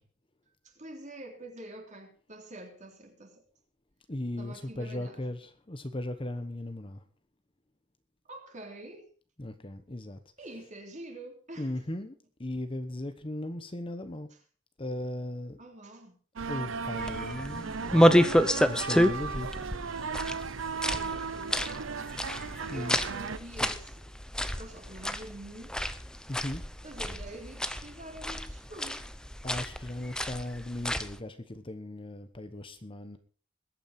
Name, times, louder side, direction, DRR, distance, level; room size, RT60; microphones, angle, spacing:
voice 1, 0.6-3.4 4.4-5.2 8.3-9.1 10.4-11.7 15.6-16.2 20.8-21.7 22.6-24.1 24.5-25.9 26.8-29.1, right 1 dB, 40° right, 3.6 m, -46 dB
voice 2, 4.1-7.0 9.4-10.2 11.6-12.1 12.4-14.3 14.8-15.6 16.5-19.6 22.7-23.0 23.6-23.7 26.3-26.6 29.4-33.2, left 1 dB, 25° left, 1.1 m, -37 dB
sound 1, 16.4-23.4, right 5 dB, 85° right, 0.7 m, -36 dB
sound 2, 17.0-31.2, equal, 5° left, 0.8 m, -29 dB
21.0 x 9.1 x 4.3 m
head